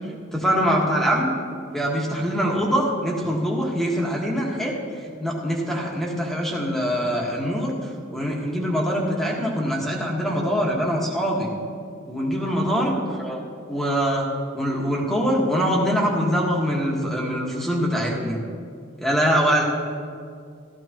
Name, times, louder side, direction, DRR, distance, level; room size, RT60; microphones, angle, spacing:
voice 1, 0.3-1.3 1.7-4.8 5.2-7.7 8.1-11.5 12.1-13.4 13.7-14.3 14.5-18.4 19.0-19.6, equal, ahead, -3 dB, 1.6 m, -23 dB
15.0 x 13.5 x 3.0 m, 2.3 s
head